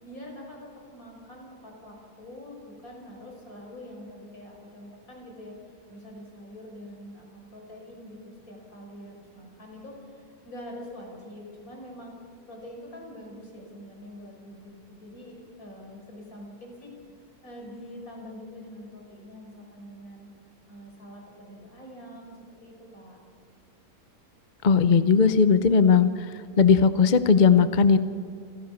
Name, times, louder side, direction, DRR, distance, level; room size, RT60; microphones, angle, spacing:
voice 1, 0.0-5.5 5.9-12.2 12.5-16.9 17.4-20.3 20.7-23.2, left 1 dB, 70° left, 0 dB, 5.9 m, -44 dB
voice 2, 24.6-26.1 26.6-28.0, left 5 dB, 40° left, 12 dB, 0.7 m, -18 dB
28.0 x 16.5 x 7.2 m, 2.4 s
omnidirectional pair, 1.6 m